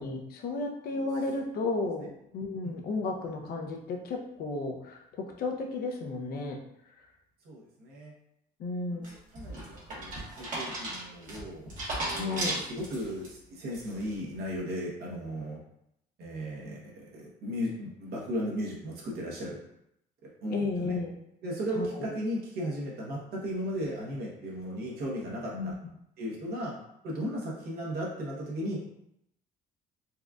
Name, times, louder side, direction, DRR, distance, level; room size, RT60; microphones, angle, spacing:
voice 1, 0.0-2.1 2.3-6.6 8.6-9.1 12.1-12.6 20.5-21.2 21.7-22.1 25.5-25.7, left 3 dB, 65° left, 2 dB, 0.6 m, -33 dB
voice 2, 7.4-8.1 8.9-11.7 12.1-15.6 16.2-19.6 20.2-21.0 21.4-25.7 26.2-26.8 27.0-28.8, equal, 65° right, -3 dB, 1.1 m, -36 dB
sound 1, 9.0-13.3 13.7-14.1, right 1 dB, 50° right, 1.4 m, -36 dB
4.1 x 2.4 x 2.4 m, 0.78 s
cardioid pair, 110°, 17 cm